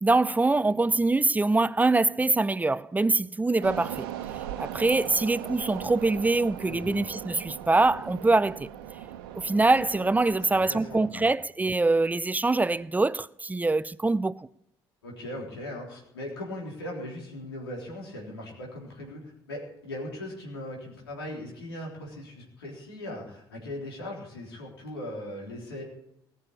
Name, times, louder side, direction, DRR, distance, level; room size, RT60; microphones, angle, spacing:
voice 1, 0.0-4.1 4.6-8.7 9.4-14.5, right 3 dB, 15° right, 0.5 m, -24 dB
sound 1, 3.6-11.1, right 11 dB, 70° right, 1.1 m, -39 dB
voice 2, 6.6-7.0 10.5-11.2 15.0-25.8, left 1 dB, 80° left, 3.6 m, -39 dB
19.5 x 6.8 x 8.7 m
figure-of-eight pair, 50°, 13 cm